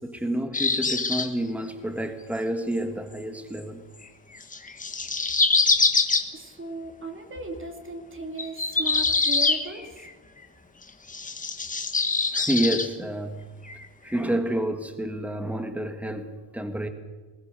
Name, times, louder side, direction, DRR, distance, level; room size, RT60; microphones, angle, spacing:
voice 1, 0.0-3.8 12.3-13.4 14.0-16.9, right 1 dB, 5° right, 7 dB, 1.7 m, -29 dB
sound 1, 0.5-1.3 4.3-6.3 8.4-10.1 11.1-12.9 13.7-13.8 14.1-14.2, left 4 dB, 15° left, 1.3 m, -24 dB
voice 2, 6.3-10.1, right 2 dB, 25° right, 4 dB, 2.6 m, -37 dB
21.0 x 19.5 x 6.7 m, 1.3 s
cardioid pair, 150°, 48 cm